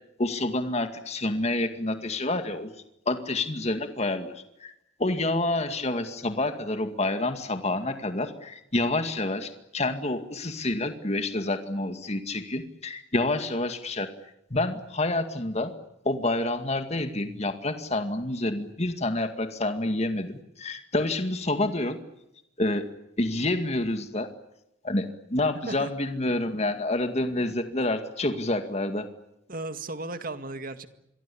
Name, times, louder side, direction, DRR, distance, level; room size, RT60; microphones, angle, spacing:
voice 1, 0.2-2.7 3.1-4.7 5.0-14.1 14.5-15.7 16.0-22.0 22.6-22.9 23.2-24.3 24.8-29.1, left 2 dB, 35° left, 8 dB, 2.2 m, -28 dB
voice 2, 29.5-30.9, right 2 dB, 45° right, 9 dB, 2.0 m, -35 dB
27.5 x 23.5 x 8.6 m, 0.83 s
head